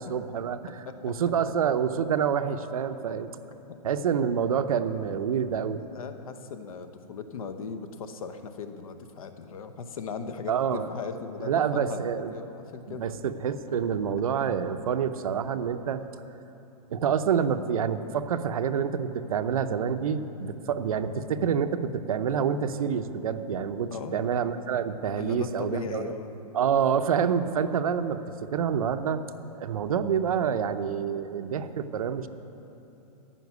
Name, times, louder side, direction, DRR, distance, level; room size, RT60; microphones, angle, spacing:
voice 1, 0.0-3.3 3.8-5.8 10.5-10.9 11.4-12.3 12.9-16.0 16.9-26.1 26.5-29.2 29.5-32.3, right 7 dB, 60° right, 9 dB, 0.7 m, -27 dB
voice 2, 5.9-13.1 13.4-13.8 23.9-24.3 25.2-26.3, left 5 dB, 60° left, 8 dB, 1.0 m, -38 dB
14.5 x 5.8 x 9.4 m, 3.0 s
hypercardioid pair, 180°, 21 cm